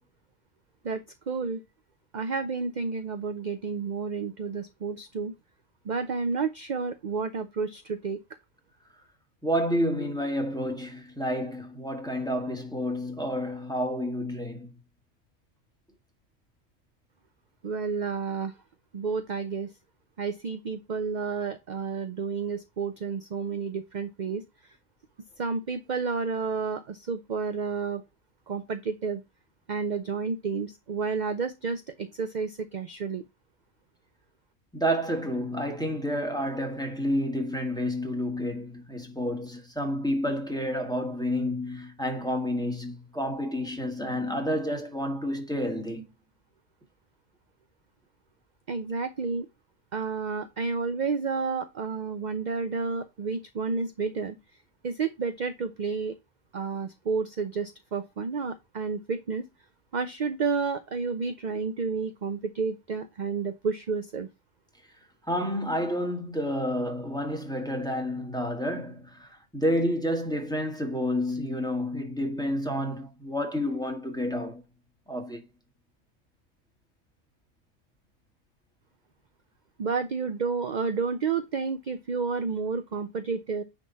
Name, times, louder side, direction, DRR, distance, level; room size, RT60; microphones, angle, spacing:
voice 1, 0.8-1.6 2.1-5.3 5.8-8.2 17.6-18.5 18.9-19.7 20.2-24.4 25.4-28.0 28.5-29.2 29.7-33.2 48.7-49.5 49.9-54.4 54.8-56.1 56.5-59.4 59.9-64.3 79.8-83.6, right 5 dB, 45° right, 0.7 m, -30 dB
voice 2, 9.4-14.7 34.7-46.0 65.3-74.6 75.1-75.4, equal, 5° left, 1.8 m, -30 dB
9.9 x 3.8 x 4.1 m
omnidirectional pair, 1.3 m